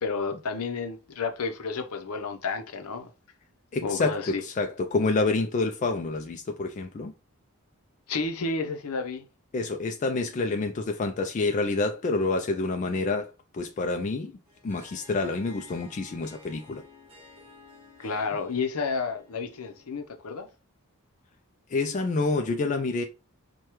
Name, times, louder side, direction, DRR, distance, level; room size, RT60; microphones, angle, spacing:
voice 1, 0.0-3.1 3.8-4.4 8.1-9.2 18.0-20.5, left 4 dB, 80° left, 0.6 m, -31 dB
voice 2, 3.7-7.1 9.5-14.4 14.6-16.8 21.7-23.0, left 3 dB, 35° left, 0.3 m, -28 dB
Harp, 14.5-20.2, left 3 dB, 25° right, 1.5 m, -53 dB
4.7 x 2.2 x 2.9 m
head